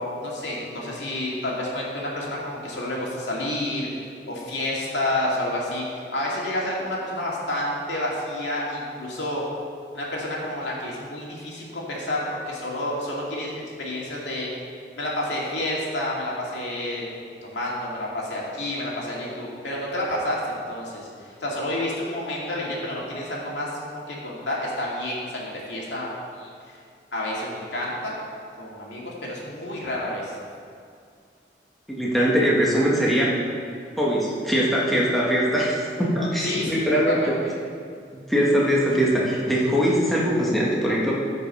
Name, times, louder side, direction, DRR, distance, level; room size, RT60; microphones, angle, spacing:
voice 1, 0.0-3.9 4.2-5.8 6.1-9.4 9.9-14.5 15.0-17.1 17.4-21.1 21.4-26.1 26.4-26.5 27.1-28.1 28.6-30.3 36.4-37.5, left 1 dB, 85° left, -4 dB, 2.5 m, -29 dB
voice 2, 32.0-33.3 34.0-37.3 38.3-41.1, equal, ahead, -6 dB, 1.5 m, -21 dB
14.5 x 5.3 x 5.5 m, 2.3 s
head